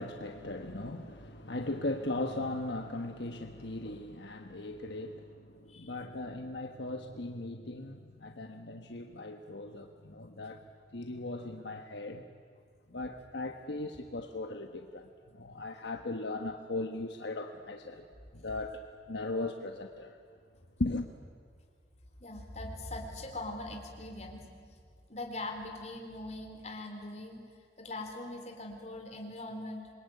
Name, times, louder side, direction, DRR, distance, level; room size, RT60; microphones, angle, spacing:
voice 1, 0.0-10.6 10.9-12.2 12.9-18.1 18.3-20.2 20.8-21.1, left 2 dB, 70° left, 1.3 m, -38 dB
voice 2, 22.2-24.5 25.1-27.4 27.8-29.9, left 2 dB, 35° left, 3.9 m, -41 dB
27.0 x 22.0 x 9.5 m
head